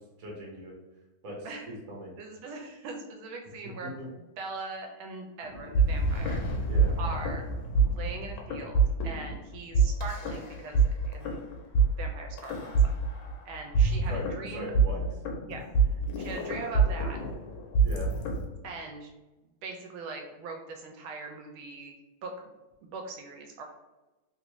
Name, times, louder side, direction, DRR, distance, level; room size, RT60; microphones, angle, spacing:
voice 1, 0.2-0.7 1.2-2.1 4.0-4.1 6.7-6.9 14.1-14.3 14.5-15.0 15.3-15.4 17.8-18.1, equal, 50° right, -2 dB, 1.2 m, -39 dB
voice 2, 2.2-4.0 4.4-6.4 7.0-7.4 7.9-11.4 12.0-12.9 13.4-14.7 15.4-15.7 16.2-17.2 18.6-19.1 19.6-22.0 22.2-22.5 22.8-23.6, right 3 dB, 85° right, 2 dB, 1.4 m, -41 dB
sound 1, 5.4-18.5, right 4 dB, 90° left, 1.5 m, -26 dB
3.5 x 2.5 x 3.0 m, 1.1 s
omnidirectional pair, 2.2 m